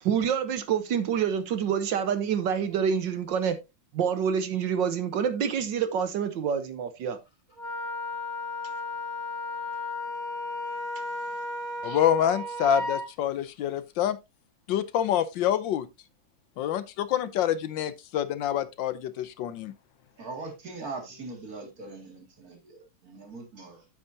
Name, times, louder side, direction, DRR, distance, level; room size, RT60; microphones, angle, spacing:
voice 1, 0.0-3.6 3.9-7.2, right 7 dB, 70° right, 1.5 m, -27 dB
Wind instrument woodwind instrument, 7.6-13.1, left 1 dB, 25° left, 2.1 m, -34 dB
voice 2, 11.8-14.2 14.7-15.9 16.6-19.7, left 10 dB, 75° left, 1.4 m, -27 dB
voice 3, 20.2-23.9, right 3 dB, 50° right, 2.7 m, -41 dB
9.2 x 8.2 x 2.7 m
omnidirectional pair, 2.1 m